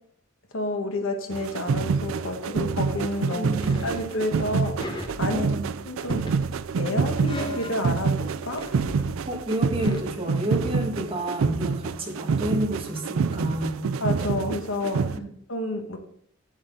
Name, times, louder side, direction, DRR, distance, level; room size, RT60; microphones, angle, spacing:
voice 1, 0.5-3.5 3.8-5.5 5.8-6.3 6.8-8.7 14.0-15.1 15.5-16.0, left 1 dB, 75° left, 4 dB, 1.4 m, -30 dB
sound 1, 1.3-15.2, right 5 dB, 75° right, 0.4 m, -27 dB
voice 2, 3.3-3.9 5.3-5.7 9.3-13.9 15.1-15.3, equal, 25° right, 0 dB, 1.8 m, -30 dB
sound 2, 3.5-4.1 4.8-5.8 6.0-8.2 8.5-10.0, left 1 dB, 25° left, 1.2 m, -39 dB
8.8 x 8.0 x 3.9 m, 0.65 s
head